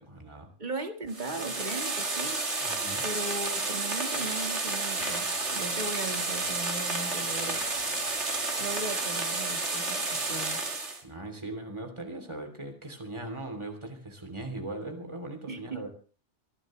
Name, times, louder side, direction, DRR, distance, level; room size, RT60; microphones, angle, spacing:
voice 1, 0.0-0.5 2.6-3.0 11.0-15.9, right 2 dB, 25° right, 3.2 m, -39 dB
voice 2, 0.6-2.4 3.0-7.7 8.6-10.6 15.5-15.9, right 2 dB, 40° right, 1.8 m, -38 dB
sound 1, 1.1-11.0, right 3 dB, 75° right, 2.8 m, -31 dB
Mechanisms, 3.4-3.5 4.2-10.0, left 1 dB, 80° left, 5.0 m, -49 dB
25.5 x 12.0 x 3.2 m
omnidirectional pair, 1.2 m